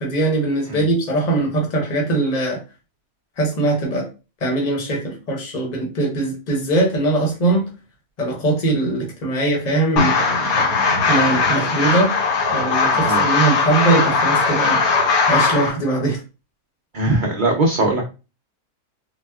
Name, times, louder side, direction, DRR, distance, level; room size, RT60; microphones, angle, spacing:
voice 1, 0.0-2.6 3.4-4.1 4.4-7.7 8.2-10.2 11.1-12.1 12.5-14.8 15.3-16.2, right 2 dB, 35° left, 0 dB, 0.9 m, -21 dB
Movement in the Dark, 10.0-15.7, left 4 dB, 75° left, 1.3 m, -18 dB
voice 2, 16.9-18.0, right 2 dB, 85° right, -1 dB, 0.4 m, -20 dB
4.1 x 2.1 x 2.3 m, 0.31 s
omnidirectional pair, 1.6 m